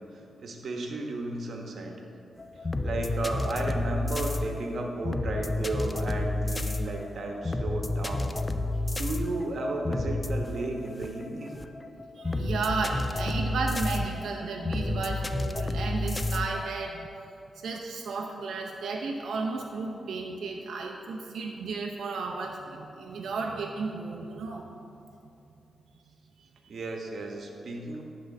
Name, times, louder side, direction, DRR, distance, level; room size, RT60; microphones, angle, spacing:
voice 1, 0.4-1.9 2.8-8.3 9.0-11.5 26.7-28.0, right 2 dB, 65° right, 1 dB, 1.2 m, -33 dB
sound 1, 2.4-17.1, left 2 dB, 20° left, 0.4 m, -31 dB
voice 2, 12.1-17.1 17.6-24.7 26.4-26.7, right 4 dB, 85° right, 1 dB, 0.7 m, -33 dB
10.5 x 3.8 x 7.2 m, 2.9 s
cardioid pair, 85°, 0 cm